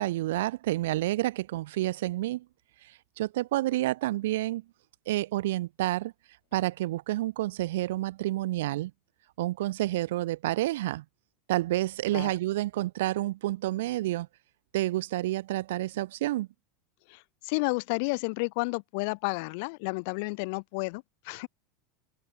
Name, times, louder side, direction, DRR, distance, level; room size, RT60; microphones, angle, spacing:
voice 1, 0.0-2.5 2.8-4.6 5.1-6.1 6.5-8.9 9.4-11.0 11.5-14.3 14.7-16.5, right 16 dB, 80° right, 0.6 m, -29 dB
voice 2, 17.1-21.5, left 30 dB, 65° left, 0.8 m, -31 dB
open air
supercardioid pair, 110°, 0 cm